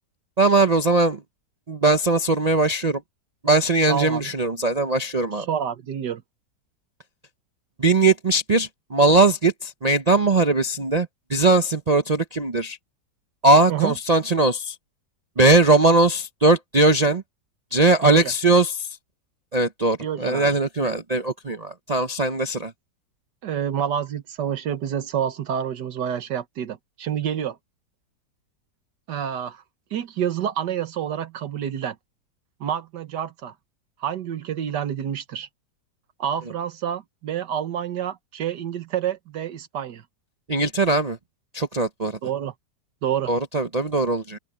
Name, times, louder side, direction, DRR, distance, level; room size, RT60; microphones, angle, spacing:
voice 1, 0.4-1.2 1.7-3.0 3.4-5.5 7.8-12.8 13.4-14.8 15.4-17.2 17.7-18.9 19.5-22.7 40.5-41.2 41.5-42.2 43.3-44.4, right 2 dB, 45° right, 0.5 m, -20 dB
voice 2, 3.9-4.2 5.3-6.2 13.7-13.9 18.0-18.3 20.0-20.5 20.8-20.9 23.4-27.6 29.1-29.6 29.9-32.0 32.6-33.5 34.0-35.5 36.2-40.0 42.2-42.5 43.0-43.3, right 9 dB, 75° right, 1.7 m, -28 dB
open air
omnidirectional pair, 1.9 m